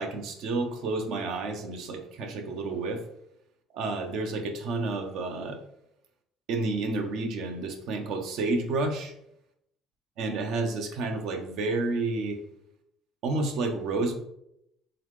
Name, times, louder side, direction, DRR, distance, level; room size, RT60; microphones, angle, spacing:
voice 1, 0.0-3.0 3.7-5.6 6.5-9.1 10.2-12.4 13.2-14.1, right 3 dB, 75° right, 5 dB, 0.7 m, -30 dB
3.9 x 3.7 x 3.1 m, 0.79 s
supercardioid pair, 95°, 0 cm